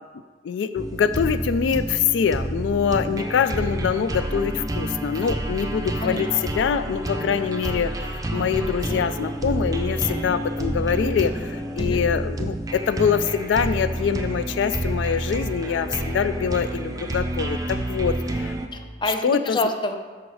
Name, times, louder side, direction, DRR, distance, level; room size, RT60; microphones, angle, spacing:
voice 1, 0.5-6.3 6.5-7.9 8.3-18.1 18.4-18.5 19.2-19.6, left 7 dB, 85° left, 12 dB, 0.3 m, -24 dB
sound 1, 0.8-18.7, right 1 dB, 20° right, 0.6 m, -29 dB
voice 2, 6.0-6.5 11.8-12.0 18.7-20.0, left 1 dB, 25° left, 6 dB, 0.6 m, -27 dB
6.1 x 5.8 x 6.3 m, 1.5 s
head